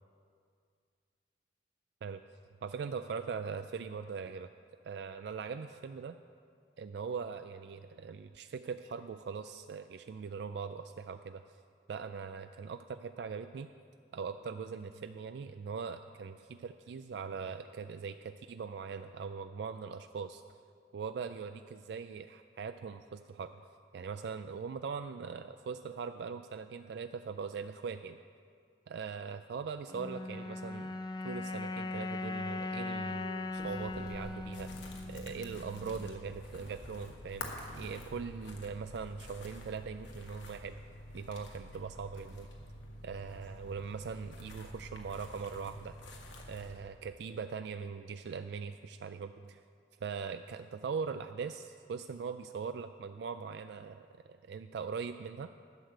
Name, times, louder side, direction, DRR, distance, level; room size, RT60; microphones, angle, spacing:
voice 1, 2.6-4.5 4.8-6.2 6.8-11.4 11.9-13.7 14.1-20.4 20.9-23.5 23.9-28.2 28.9-31.0 31.2-34.7 35.1-40.8 41.1-42.5 43.0-46.0 46.5-49.6 50.0-55.5, right 5 dB, 65° right, 9 dB, 0.3 m, -41 dB
sound 1, 29.9-36.3, left 2 dB, 20° left, 0.3 m, -39 dB
sound 2, 33.6-46.8, left 1 dB, 90° left, 1.4 m, -48 dB
11.5 x 7.6 x 6.6 m, 2.2 s
head